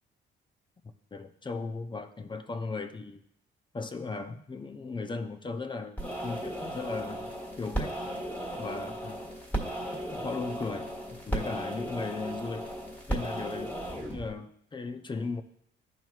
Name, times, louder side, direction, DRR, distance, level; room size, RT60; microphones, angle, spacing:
voice 1, 1.1-3.2 3.7-7.3 7.6-8.0 8.6-9.2 10.1-12.7 13.1-15.4, left 4 dB, 25° left, 7 dB, 0.6 m, -37 dB
sound 1, 6.0-14.3, right 1 dB, 10° left, 1.6 m, -35 dB
12.0 x 4.5 x 2.4 m, 0.70 s
cardioid pair, 90°, 20 cm